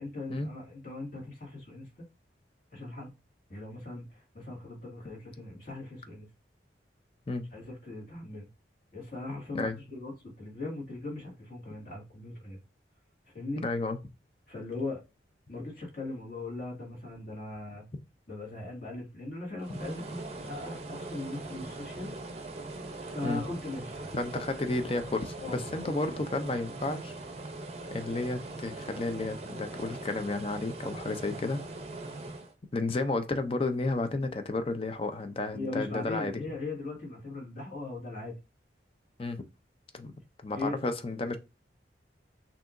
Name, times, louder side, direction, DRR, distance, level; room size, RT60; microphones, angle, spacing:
voice 1, 0.0-1.9 2.7-3.1 3.5-6.3 7.5-8.5 8.9-12.6 13.3-13.6 14.5-15.0 15.5-17.8 18.3-22.1 23.0-24.1 24.4-24.5 25.4-26.2 35.5-38.4 40.5-40.8, left 2 dB, 50° left, 2.0 m, -39 dB
voice 2, 13.6-14.0 23.2-23.4 24.1-27.1 27.9-31.6 32.7-36.4 39.2-39.4 39.9-40.1 40.4-41.4, left 2 dB, 30° left, 0.5 m, -32 dB
sound 1, 19.6-32.5, right 2 dB, 35° right, 0.6 m, -41 dB
6.0 x 2.8 x 2.5 m
head